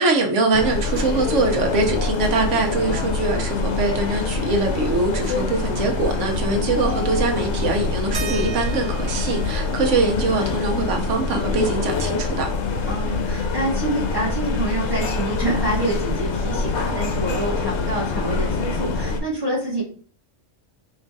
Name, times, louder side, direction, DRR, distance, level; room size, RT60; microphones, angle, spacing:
voice 1, 0.0-12.5, right 3 dB, 80° right, 1.2 m, -23 dB
sound 1, 0.5-19.2, left 4 dB, 70° left, 1.0 m, -25 dB
voice 2, 6.2-6.8 12.9-19.8, right 1 dB, 20° right, 1.5 m, -27 dB
sound 2, 8.1-13.3 13.6-13.7 14.1-15.8 17.1-17.2 17.9-18.0, right 4 dB, 45° right, 0.4 m, -38 dB
3.5 x 3.1 x 4.0 m
omnidirectional pair, 1.3 m